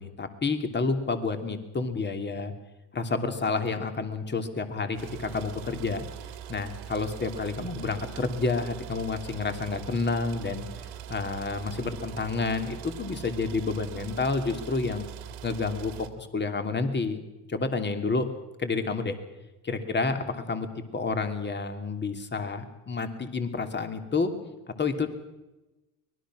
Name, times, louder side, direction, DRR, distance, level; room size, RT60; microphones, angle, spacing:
voice 1, 0.0-2.5 2.9-6.1 6.5-10.7 11.1-15.1 15.4-17.2 17.5-18.3 18.6-19.2 19.6-20.7 20.9-24.3 24.7-25.1, left 4 dB, 25° left, 7 dB, 2.9 m, -29 dB
sound 1, 5.0-16.1, right 10 dB, 75° right, 2.5 m, -42 dB
24.5 x 20.0 x 6.3 m, 1.0 s
supercardioid pair, 90°, 41 cm